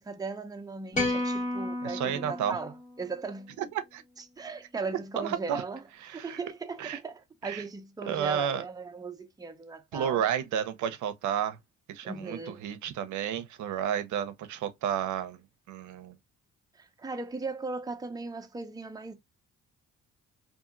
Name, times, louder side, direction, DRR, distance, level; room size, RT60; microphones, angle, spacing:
voice 1, 0.0-3.6 4.4-5.8 6.1-10.2 12.0-12.7 16.7-19.2, right 4 dB, 10° right, 0.5 m, -38 dB
sound 1, 0.9-3.3, left 2 dB, 25° left, 1.0 m, -32 dB
voice 2, 1.8-2.6 3.6-3.7 3.9-4.0 5.2-5.6 6.0-6.4 6.8-7.0 7.4-7.6 8.1-8.6 9.9-11.6 11.9-15.4 15.7-16.2, right 9 dB, 75° right, 0.6 m, -31 dB
2.7 x 2.6 x 2.4 m
cardioid pair, 90°, 30 cm